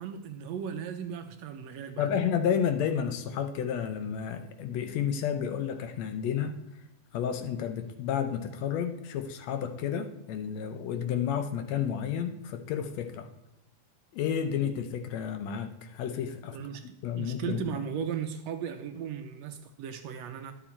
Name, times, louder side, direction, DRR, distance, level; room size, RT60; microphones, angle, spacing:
voice 1, 0.0-2.2 16.5-16.9 17.2-20.5, right 8 dB, 75° right, 7 dB, 1.7 m, -36 dB
voice 2, 2.0-6.5 7.1-13.3 14.1-16.6 17.0-17.6, left 8 dB, 75° left, 8 dB, 1.9 m, -31 dB
11.5 x 7.1 x 4.4 m, 0.94 s
omnidirectional pair, 3.3 m